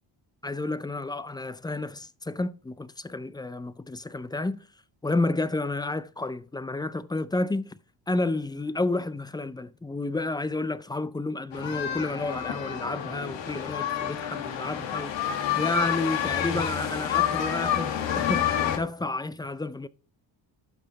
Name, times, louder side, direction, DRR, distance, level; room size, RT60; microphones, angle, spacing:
voice 1, 0.4-4.7 5.0-7.8 8.1-19.9, left 2 dB, 10° left, 0.3 m, -31 dB
sound 1, 11.5-18.8, left 9 dB, 80° left, 1.7 m, -29 dB
12.0 x 5.7 x 4.0 m
cardioid pair, 105°, 43 cm